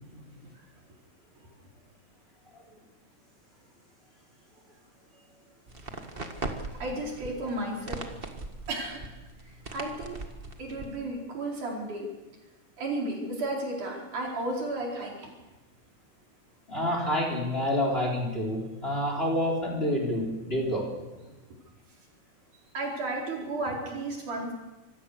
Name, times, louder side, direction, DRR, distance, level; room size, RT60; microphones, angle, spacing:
sound 1, 5.7-11.0, right 2 dB, 25° right, 1.3 m, -40 dB
voice 1, 6.8-8.0 8.7-9.0 9.7-10.1 10.6-12.1 12.8-15.3 22.7-24.5, right 2 dB, 85° right, -2 dB, 6.1 m, -33 dB
voice 2, 16.7-20.9, left 1 dB, 20° left, 1 dB, 3.9 m, -28 dB
26.0 x 15.5 x 6.8 m, 1.1 s
omnidirectional pair, 3.4 m